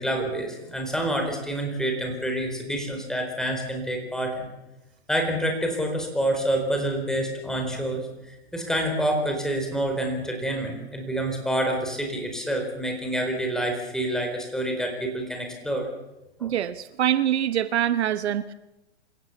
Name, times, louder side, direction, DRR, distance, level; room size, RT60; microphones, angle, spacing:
voice 1, 0.0-4.5 5.1-15.9 16.4-16.5, right 1 dB, ahead, 3 dB, 4.3 m, -27 dB
voice 2, 16.4-18.5, right 10 dB, 70° right, 13 dB, 1.1 m, -24 dB
26.5 x 16.0 x 7.2 m, 0.96 s
hypercardioid pair, 145°, 34 cm